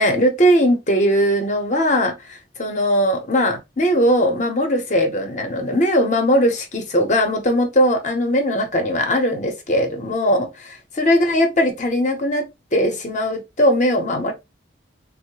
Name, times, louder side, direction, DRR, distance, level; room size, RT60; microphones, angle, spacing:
voice 1, 0.0-14.3, equal, 40° left, 0.7 m, -19 dB
3.7 x 2.0 x 2.8 m
head